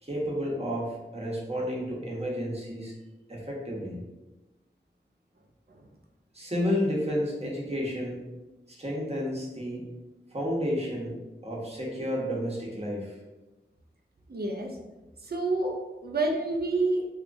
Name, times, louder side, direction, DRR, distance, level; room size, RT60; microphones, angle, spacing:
voice 1, 0.0-2.9 3.3-4.0 6.3-8.2 8.7-9.8 10.3-11.1 11.4-13.2, equal, 30° right, -4 dB, 1.0 m, -31 dB
voice 2, 14.3-14.8 15.2-17.1, right 2 dB, 55° right, 2 dB, 0.6 m, -28 dB
3.5 x 2.8 x 2.6 m, 1.1 s
wide cardioid pair, 45°, 19 cm